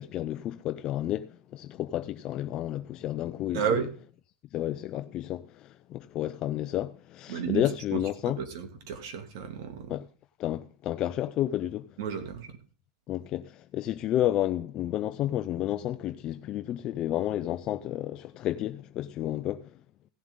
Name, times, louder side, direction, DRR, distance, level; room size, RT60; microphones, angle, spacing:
voice 1, 0.0-3.9 4.5-8.4 9.9-10.1 10.4-11.9 13.1-19.8, left 13 dB, 35° left, 0.6 m, -31 dB
voice 2, 3.5-3.9 7.3-7.6 7.9-8.0 8.4-9.9 12.0-12.5, right 7 dB, 70° right, 2.5 m, -32 dB
16.5 x 7.7 x 3.8 m
supercardioid pair, 140°, 2 cm